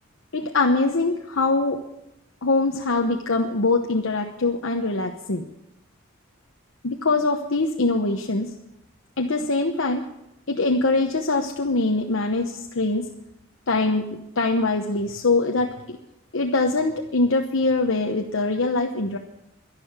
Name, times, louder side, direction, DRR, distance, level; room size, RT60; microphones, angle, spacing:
voice 1, 0.3-1.8 2.4-5.5 6.8-8.5 9.2-10.0 10.5-13.0 13.7-14.1 14.4-16.0 16.3-19.2, left 3 dB, 75° left, 3 dB, 1.0 m, -23 dB
11.5 x 11.5 x 8.9 m, 0.87 s
head